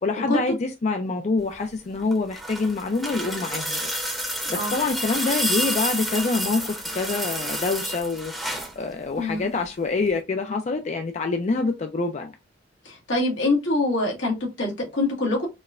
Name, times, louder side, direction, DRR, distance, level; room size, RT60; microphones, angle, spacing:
voice 1, 0.0-3.9 4.5-8.3 8.8-12.3, left 3 dB, 40° left, 0.4 m, -26 dB
sound 1, 2.0-8.8 10.1-10.2, equal, ahead, 0.7 m, -29 dB
voice 2, 9.2-9.5 12.8-15.5, left 2 dB, 85° left, 1.4 m, -24 dB
4.1 x 2.1 x 2.4 m
head